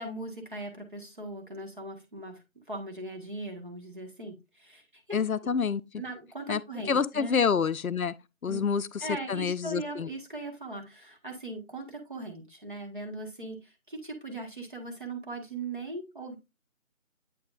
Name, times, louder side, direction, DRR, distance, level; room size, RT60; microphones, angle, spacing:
voice 1, 0.0-4.8 5.1-5.2 6.0-7.4 8.5-8.6 9.0-16.4, right 2 dB, 35° right, 1.5 m, -39 dB
voice 2, 5.1-5.8 6.5-6.6 6.9-8.1 8.4-10.1, left 6 dB, 80° left, 0.6 m, -27 dB
8.6 x 4.8 x 2.5 m
figure-of-eight pair, 170°, 42 cm